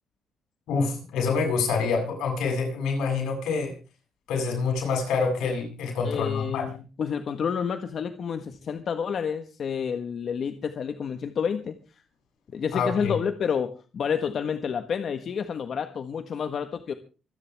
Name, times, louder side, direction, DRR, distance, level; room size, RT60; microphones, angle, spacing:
voice 1, 0.7-3.7 4.3-6.7 12.7-13.2, left 4 dB, 85° left, 2 dB, 7.6 m, -26 dB
voice 2, 6.0-11.8 12.5-16.9, left 7 dB, 55° left, 8 dB, 1.5 m, -29 dB
26.5 x 10.0 x 3.6 m, 0.35 s
cardioid pair, 90°, 0 cm